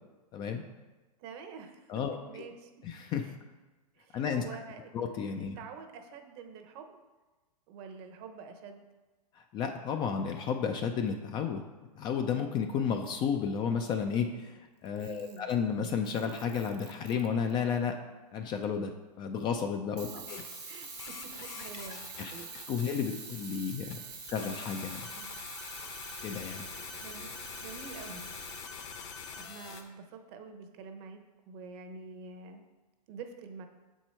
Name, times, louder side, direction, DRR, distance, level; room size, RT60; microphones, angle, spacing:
voice 1, 0.3-0.6 1.9-2.2 2.8-3.3 4.1-4.4 4.9-5.6 9.4-11.6 12.0-17.9 18.3-18.9 19.2-20.4 22.2-22.3 22.7-24.0 24.3-25.1 26.2-26.7, left 7 dB, 20° left, 5 dB, 0.3 m, -32 dB
voice 2, 1.2-1.9 2.2-2.7 3.2-3.3 3.9-4.9 5.4-7.0 7.7-8.8 15.0-15.5 20.0-20.1 20.7-22.5 23.9-24.2 25.1-25.3 27.0-27.3 27.6-28.3 29.3-32.6 33.1-33.7, right 5 dB, 40° right, 6 dB, 0.8 m, -47 dB
Camera, 14.9-15.6 16.1-17.6 20.0-28.7, right 8 dB, 80° right, 1.0 m, -47 dB
sound 1, 20.3-29.8, left 6 dB, 45° left, 0.9 m, -45 dB
6.6 x 4.6 x 4.3 m, 1.2 s
hypercardioid pair, 130°, 20 cm